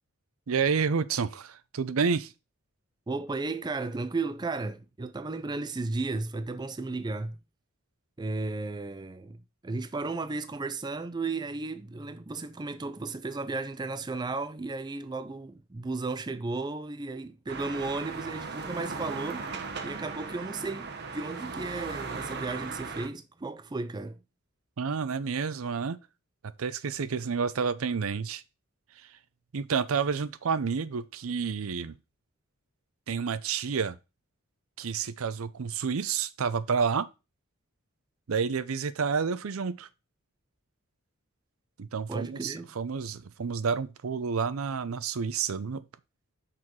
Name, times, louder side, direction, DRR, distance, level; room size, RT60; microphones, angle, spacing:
voice 1, 0.5-2.3 24.8-26.0 26.6-28.4 29.0-29.1 29.5-31.9 33.1-34.0 34.8-37.1 38.3-39.9 41.8-45.8, right 5 dB, 75° right, 0.5 m, -29 dB
voice 2, 3.1-7.4 8.2-24.2 42.1-42.7, right 3 dB, 20° right, 0.4 m, -34 dB
sound 1, 17.5-23.1, right 4 dB, 50° right, 0.9 m, -37 dB
6.1 x 4.5 x 4.6 m
head